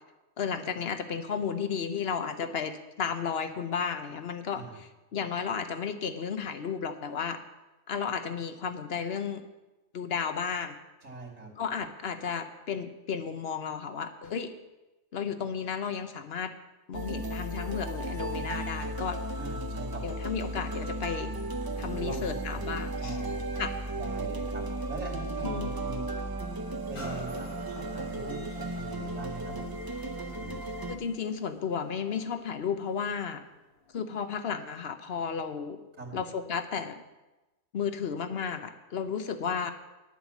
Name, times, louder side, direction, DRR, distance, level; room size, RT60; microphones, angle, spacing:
voice 1, 0.4-7.4 7.9-9.4 9.9-10.8 11.6-14.5 15.1-16.5 16.9-19.2 20.0-21.3 21.8-23.2 23.6-23.8 25.4-25.7 30.9-33.4 33.9-35.8 36.1-37.0 37.7-39.7, left 6 dB, 55° left, 9 dB, 1.0 m, -33 dB
voice 2, 11.0-11.5 19.3-20.2 22.0-23.5 24.0-26.0 26.9-29.7 30.3-30.7 36.0-36.2, right 3 dB, 70° right, -2 dB, 3.0 m, -42 dB
sound 1, 16.9-31.0, right 1 dB, 30° right, 0.4 m, -35 dB
sound 2, 27.0-34.6 35.1-35.2, left 1 dB, 80° left, 2.4 m, -49 dB
10.5 x 7.4 x 7.2 m, 1.1 s
omnidirectional pair, 1.4 m